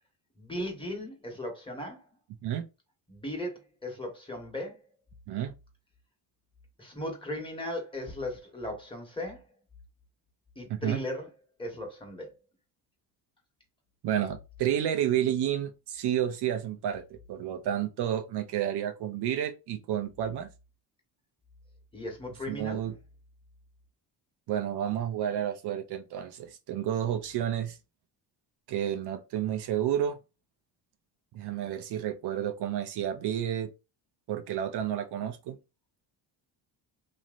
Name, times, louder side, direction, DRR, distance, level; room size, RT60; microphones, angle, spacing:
voice 1, 0.4-2.0 3.1-4.8 6.8-9.4 10.6-11.3 11.6-12.3 21.9-22.8, left 1 dB, 10° left, 1.5 m, -37 dB
voice 2, 10.7-11.0 14.0-17.0 17.3-20.5 22.5-22.9 24.5-27.8 28.7-30.2 31.3-33.7 34.3-35.6, right 10 dB, 70° right, 0.7 m, -30 dB
3.1 x 2.7 x 2.5 m
cardioid pair, 105°, 42 cm